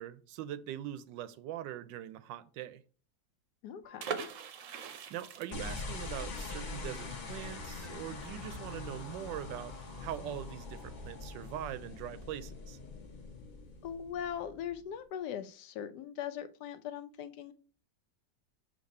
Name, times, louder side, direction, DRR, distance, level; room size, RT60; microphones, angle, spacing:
voice 1, 0.0-2.8 4.9-12.8, right 11 dB, 90° right, 1.3 m, -42 dB
voice 2, 3.6-4.3 13.8-17.5, left 9 dB, 75° left, 1.1 m, -40 dB
sound 1, 3.8-4.0 5.2-5.3 6.5-6.6 7.8-7.9, left 3 dB, 10° left, 1.4 m, -53 dB
sound 2, 4.0-9.6 9.9-10.0 10.3-10.6, right 7 dB, 60° right, 0.9 m, -43 dB
sound 3, 5.5-14.9, left 3 dB, 35° left, 0.8 m, -43 dB
6.5 x 2.8 x 5.3 m
omnidirectional pair, 1.9 m